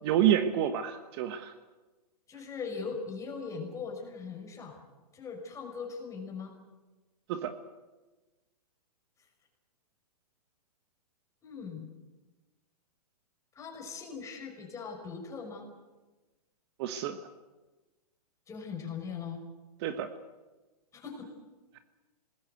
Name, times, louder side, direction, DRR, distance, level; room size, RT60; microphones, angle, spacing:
voice 1, 0.0-1.5 7.3-7.5 16.8-17.2 19.8-20.1, right 10 dB, 40° right, 9 dB, 1.4 m, -28 dB
voice 2, 2.3-4.8 5.1-6.5 11.4-11.9 13.6-15.7 18.5-19.4 20.9-21.3, left 5 dB, 15° left, 2 dB, 5.6 m, -40 dB
26.0 x 20.0 x 8.1 m, 1.2 s
hypercardioid pair, 140°, 20 cm